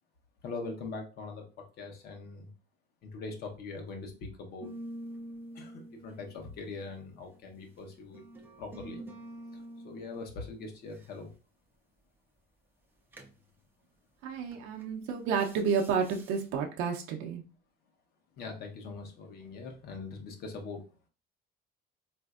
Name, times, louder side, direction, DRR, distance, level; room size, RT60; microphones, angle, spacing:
voice 1, 0.4-2.5 3.0-4.7 5.5-8.2 8.6-9.0 9.8-11.3 18.4-20.8, left 3 dB, 50° left, 3 dB, 0.8 m, -42 dB
sound 1, 4.6-7.4 8.1-10.2 13.1-13.4 14.5-14.8 15.3-16.4, right 1 dB, 10° right, 0.4 m, -46 dB
voice 2, 14.2-17.4, right 6 dB, 85° right, 1 dB, 0.6 m, -30 dB
4.1 x 2.6 x 2.4 m, 0.34 s
cardioid pair, 165°, 21 cm